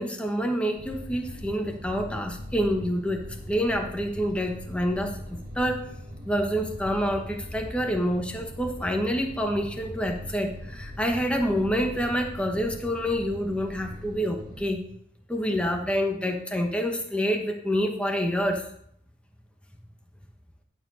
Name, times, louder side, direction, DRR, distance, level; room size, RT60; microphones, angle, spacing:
voice 1, 0.0-5.2 5.5-5.9 6.2-14.8 15.3-18.6, equal, 5° left, 3 dB, 1.0 m, -27 dB
sound 1, 0.8-14.7, equal, 40° right, 1.8 m, -41 dB
12.0 x 4.6 x 6.3 m, 0.67 s
head